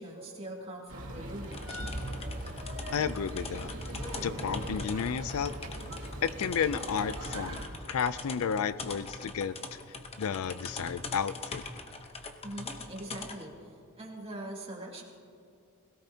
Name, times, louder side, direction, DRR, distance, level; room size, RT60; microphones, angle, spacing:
voice 1, 0.0-1.7 2.0-2.3 12.4-15.0, right 1 dB, 25° right, -1 dB, 2.1 m, -42 dB
sound 1, 0.9-7.7, right 1 dB, 85° right, 2.4 m, -40 dB
sound 2, 1.4-13.5, left 3 dB, 25° left, 0.8 m, -43 dB
voice 2, 2.9-3.7 4.2-5.5 6.2-7.6 7.9-9.8 10.2-11.6, left 7 dB, 70° left, 15 dB, 0.4 m, -32 dB
sound 3, 3.9-5.3 7.1-8.0 8.3-8.4 8.8-9.0, equal, 10° left, 2.6 m, -46 dB
21.0 x 17.0 x 2.8 m, 2.4 s
head